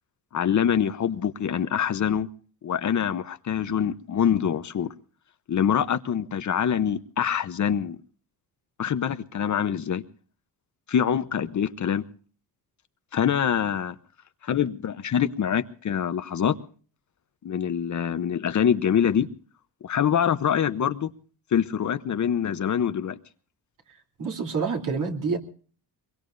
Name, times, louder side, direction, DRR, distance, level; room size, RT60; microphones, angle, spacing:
voice 1, 0.3-2.3 2.6-4.9 5.5-8.0 8.8-10.0 10.9-12.0 13.1-13.9 14.4-16.6 17.4-19.3 19.8-21.1 21.5-23.2, left 8 dB, 45° left, 0.9 m, -25 dB
voice 2, 24.2-25.4, right 5 dB, 50° right, 3.1 m, -27 dB
23.5 x 22.5 x 2.6 m
cardioid pair, 120°, 41 cm